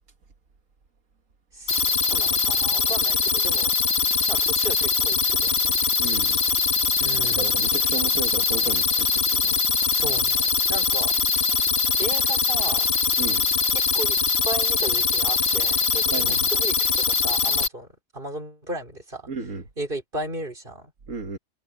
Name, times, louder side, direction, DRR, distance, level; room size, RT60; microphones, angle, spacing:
voice 1, 1.5-3.7 4.3-5.8 7.0-7.5 9.9-11.2 12.0-12.9 13.7-14.2 14.4-17.9 18.1-19.3 19.8-20.9, right 2 dB, 45° right, 4.6 m, -35 dB
sound 1, 1.7-17.7, left 5 dB, 50° left, 1.8 m, -22 dB
voice 2, 6.0-6.4 7.2-9.6 13.2-13.4 16.1-16.5 19.3-19.6 21.1-21.4, right 4 dB, 85° right, 2.0 m, -33 dB
omnidirectional pair, 1.3 m